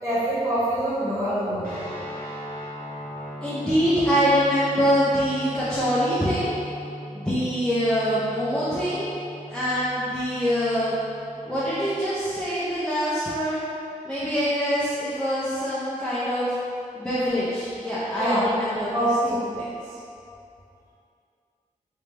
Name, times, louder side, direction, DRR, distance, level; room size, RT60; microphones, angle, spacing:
voice 1, 0.0-1.7 18.1-18.4 18.9-19.4, right 1 dB, 20° right, -11 dB, 1.4 m, -24 dB
sound 1, 1.6-12.0, equal, 90° right, 1.3 m, -39 dB
voice 2, 3.4-6.6 7.1-9.1 9.5-11.0 11.5-13.6 14.0-16.5 16.9-19.1 19.5-20.0, equal, 5° left, -10 dB, 0.5 m, -24 dB
3.1 x 3.0 x 3.3 m, 2.6 s
wide cardioid pair, 120°, 14 cm